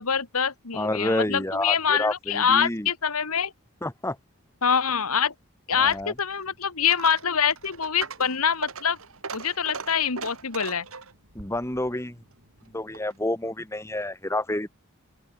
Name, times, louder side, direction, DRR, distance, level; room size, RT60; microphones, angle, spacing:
voice 1, 0.0-3.5 4.6-5.3 5.7-9.0 9.3-10.9, left 7 dB, 85° left, 1.7 m, -25 dB
voice 2, 0.7-2.9 3.8-4.2 5.7-6.1 11.4-12.2 12.7-14.7, left 1 dB, 10° left, 1.9 m, -29 dB
Coin (dropping), 5.7-13.2, right 5 dB, 70° right, 2.7 m, -40 dB
open air
head